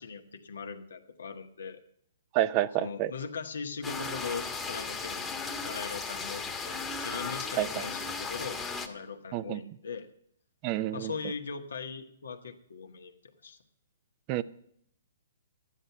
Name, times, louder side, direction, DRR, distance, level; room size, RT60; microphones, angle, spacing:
voice 1, 0.0-1.8 2.8-5.2 5.6-10.1 10.9-13.1 13.4-13.6, left 5 dB, 80° left, 6 dB, 1.6 m, -40 dB
voice 2, 2.3-3.1 7.6-7.8 9.3-9.6 10.6-11.1 14.3-14.4, right 13 dB, 35° right, 17 dB, 0.6 m, -29 dB
sound 1, 3.8-8.9, left 4 dB, 10° left, 1.3 m, -36 dB
12.5 x 10.0 x 5.8 m, 0.70 s
hypercardioid pair, 135°, 0 cm